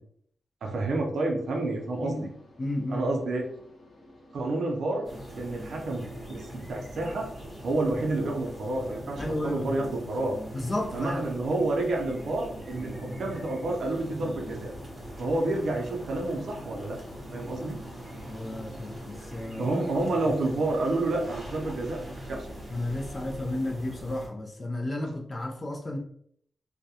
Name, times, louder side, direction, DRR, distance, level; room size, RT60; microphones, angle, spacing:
voice 1, 0.6-2.3 2.9-3.5 4.3-5.1 5.4-7.3 7.6-10.4 10.9-14.7 15.2-17.0 17.3-17.8 19.6-22.5, right 2 dB, 75° right, 1 dB, 0.5 m, -29 dB
sound 1, 1.4-20.6, left 1 dB, 80° left, 0.8 m, -52 dB
voice 2, 2.6-3.1 9.2-9.7 10.5-11.2 18.3-19.8 22.7-26.0, left 1 dB, 30° left, 1 dB, 0.4 m, -32 dB
sound 2, 5.0-24.3, right 1 dB, 20° right, 0.9 m, -41 dB
2.3 x 2.1 x 2.7 m, 0.65 s
wide cardioid pair, 135°, 0 cm